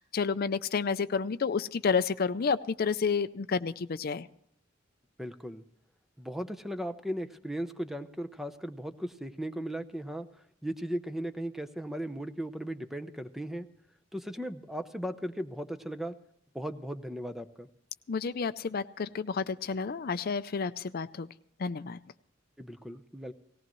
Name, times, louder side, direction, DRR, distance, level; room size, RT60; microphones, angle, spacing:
voice 1, 0.0-4.3 18.1-21.3 21.6-22.0, left 5 dB, 50° left, 13 dB, 0.5 m, -30 dB
voice 2, 5.2-5.6 6.2-10.3 10.6-13.7 14.1-16.2 16.5-17.7 22.6-23.3, equal, ahead, 9 dB, 0.7 m, -37 dB
18.5 x 17.5 x 3.1 m, 0.72 s
head